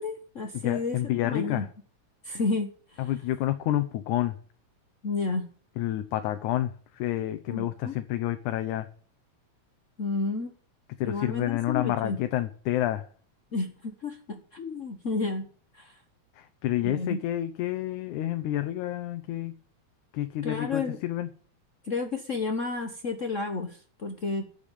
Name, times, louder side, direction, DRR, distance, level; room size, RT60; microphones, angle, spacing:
voice 1, 0.0-1.7 2.2-3.0 5.0-5.5 7.5-7.9 10.0-10.5 11.0-12.2 13.5-15.5 15.7-16.0 16.8-17.2 20.4-21.0 21.8-24.4, left 3 dB, 55° left, 0.8 m, -31 dB
voice 2, 0.5-1.7 3.0-4.4 5.8-8.9 11.0-13.1 16.4-19.5 20.1-21.3, left 13 dB, 90° left, 2.3 m, -29 dB
11.5 x 6.9 x 9.0 m
omnidirectional pair, 3.3 m